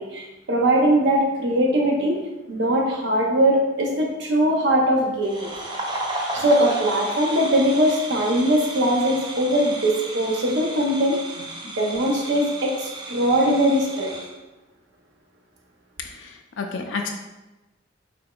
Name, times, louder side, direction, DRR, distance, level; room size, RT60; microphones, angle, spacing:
voice 1, 0.0-2.2 2.5-5.5 6.3-11.2 11.8-14.2, right 1 dB, 65° right, -1 dB, 0.8 m, -21 dB
sound 1, 5.2-14.3, right 2 dB, 25° right, 0.5 m, -34 dB
voice 2, 16.0-17.1, left 4 dB, 85° left, 2 dB, 0.4 m, -31 dB
5.1 x 3.4 x 2.3 m, 1.1 s
head